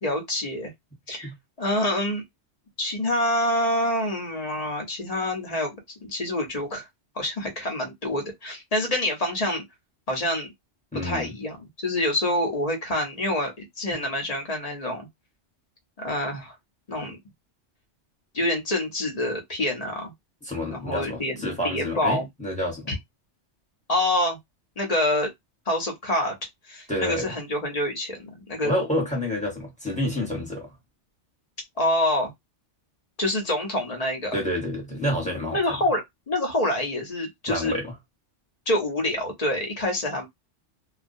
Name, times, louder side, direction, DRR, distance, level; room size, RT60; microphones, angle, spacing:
voice 1, 0.0-0.7 1.1-1.3 1.6-2.2 2.8-5.8 6.0-6.9 7.1-9.6 10.1-10.5 11.0-15.1 16.0-16.6 16.9-17.2 18.3-20.1 20.7-22.3 22.9-23.0 23.9-24.4 24.8-25.3 25.7-26.4 26.7-28.7 31.8-32.3 33.2-34.3 35.5-36.0 36.3-37.7 38.7-40.3, left 1 dB, 40° left, 0.7 m, -26 dB
voice 2, 10.9-11.3 20.4-23.0 26.9-27.3 28.6-30.7 34.3-35.8 37.5-37.9, left 1 dB, 5° left, 0.9 m, -28 dB
2.3 x 2.2 x 2.6 m
omnidirectional pair, 1.2 m